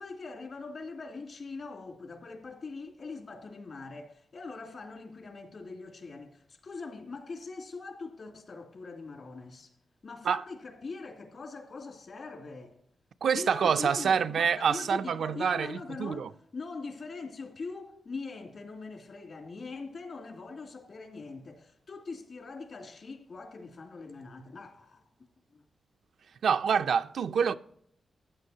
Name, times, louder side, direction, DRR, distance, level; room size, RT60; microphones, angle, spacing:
voice 1, 0.0-9.7 10.0-12.8 13.3-25.6, left 4 dB, 65° left, 2.5 m, -42 dB
voice 2, 13.2-16.3 26.4-27.5, right 7 dB, 80° right, 0.4 m, -27 dB
14.5 x 9.0 x 2.8 m
cardioid pair, 70°, 0 cm